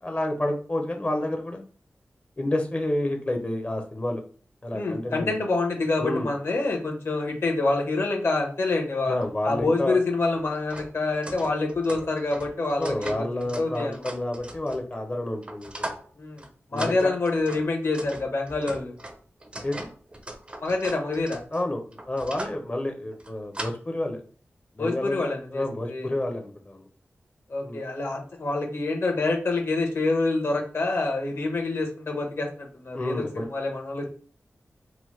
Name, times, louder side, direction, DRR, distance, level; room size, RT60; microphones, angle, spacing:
voice 1, 0.0-1.6 2.4-4.2 4.6-5.3 6.0-6.3 9.1-10.0 12.8-15.9 16.7-17.1 19.6-19.9 21.5-24.2 24.7-25.3 25.5-26.8 27.6-27.8 32.9-33.5, left 1 dB, 30° left, 3 dB, 0.5 m, -29 dB
voice 2, 4.7-9.2 9.4-13.3 13.6-14.0 16.2-16.4 16.7-18.9 20.6-21.4 24.8-26.1 27.5-34.1, left 3 dB, 60° left, 1 dB, 0.8 m, -27 dB
sound 1, 9.2-9.3 9.6-9.7 10.3-15.0 15.4-16.1 16.4-16.5 16.8-22.6 23.1-23.7, right 1 dB, 25° right, 0.4 m, -40 dB
2.9 x 2.0 x 3.1 m, 0.42 s
wide cardioid pair, 90°, 5 cm